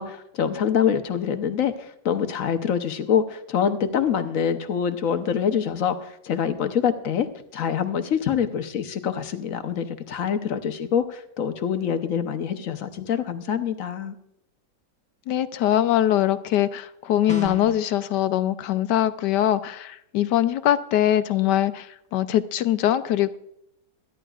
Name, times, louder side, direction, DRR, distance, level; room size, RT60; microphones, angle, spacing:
voice 1, 0.0-7.3 7.5-14.1, left 8 dB, 55° left, 8 dB, 1.1 m, -25 dB
voice 2, 15.3-23.4, left 12 dB, 75° left, 12 dB, 1.2 m, -22 dB
sound 1, 17.3-17.8, equal, 5° left, 0.8 m, -33 dB
23.0 x 11.0 x 2.4 m, 0.75 s
omnidirectional pair, 1.9 m